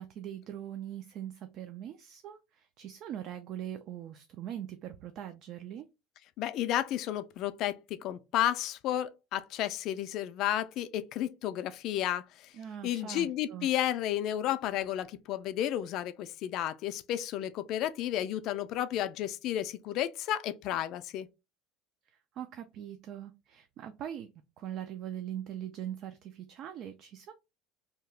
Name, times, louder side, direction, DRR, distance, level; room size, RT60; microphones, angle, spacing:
voice 1, 0.0-5.9 12.5-13.7 22.4-24.3 24.6-27.3, right 10 dB, 40° right, 0.3 m, -41 dB
voice 2, 6.4-12.5 12.8-21.3, left 12 dB, 45° left, 0.3 m, -32 dB
2.8 x 2.3 x 3.2 m
cardioid pair, 160°, 0 cm